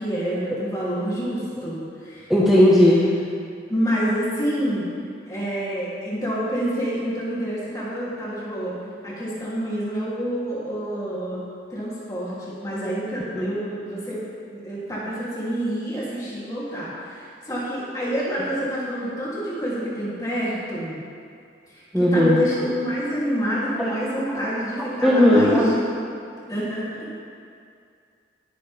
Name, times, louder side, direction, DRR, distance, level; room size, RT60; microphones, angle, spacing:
voice 1, 0.0-2.3 3.7-4.9 5.3-8.7 9.0-11.4 11.7-14.2 14.5-20.9 21.7-25.8 26.5-27.2, equal, 20° left, -9 dB, 3.1 m, -27 dB
voice 2, 2.3-3.0 13.3-13.5 21.9-22.4 23.8-23.9 24.3-24.4 24.8-25.7, left 1 dB, 5° right, -7 dB, 1.3 m, -17 dB
21.5 x 9.8 x 3.6 m, 2.3 s
head